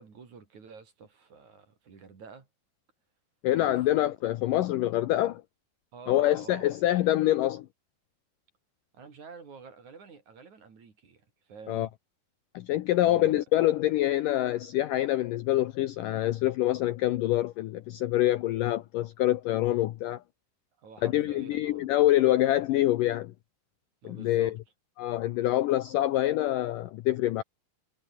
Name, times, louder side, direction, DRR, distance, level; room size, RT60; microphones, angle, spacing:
voice 1, 0.0-2.5 3.5-3.8 5.9-6.8 8.9-11.9 12.9-13.4 20.8-21.9 24.0-24.6, right 5 dB, 50° right, 4.9 m, -48 dB
voice 2, 3.4-5.4 6.1-7.7 11.7-11.9 12.5-20.2 21.0-23.3 24.0-24.5 25.0-27.4, left 14 dB, 75° left, 2.0 m, -26 dB
omnidirectional pair, 4.7 m